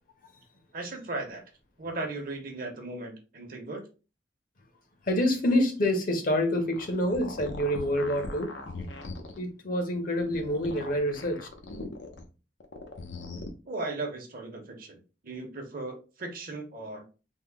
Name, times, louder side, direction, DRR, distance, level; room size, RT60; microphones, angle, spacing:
voice 1, 0.7-1.4 1.8-3.8 13.7-17.0, right 2 dB, 55° right, 0.9 m, -37 dB
voice 2, 5.0-8.5 9.4-11.5, left 1 dB, 50° left, 0.8 m, -27 dB
sound 1, 6.6-9.4 10.1-12.2 12.6-13.5, left 2 dB, 85° left, 0.7 m, -40 dB
3.5 x 2.1 x 3.4 m
head